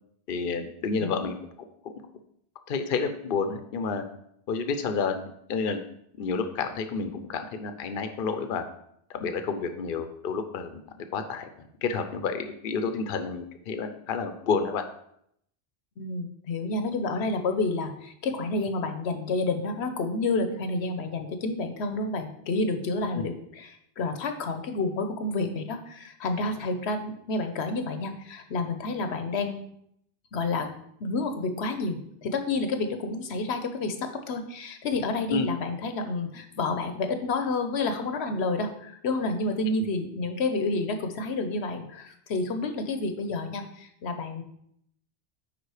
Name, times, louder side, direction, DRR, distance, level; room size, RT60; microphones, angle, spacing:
voice 1, 0.3-1.4 2.7-4.0 4.5-5.2 5.5-5.8 6.2-8.6 9.1-11.5 11.8-14.8 23.1-23.3 35.3-35.5, left 5 dB, 60° left, 8 dB, 0.8 m, -30 dB
voice 2, 1.0-1.3 16.0-29.6 30.3-30.7 31.0-44.4, left 3 dB, 80° left, 7 dB, 1.1 m, -29 dB
9.5 x 3.7 x 4.8 m, 0.72 s
omnidirectional pair, 1.1 m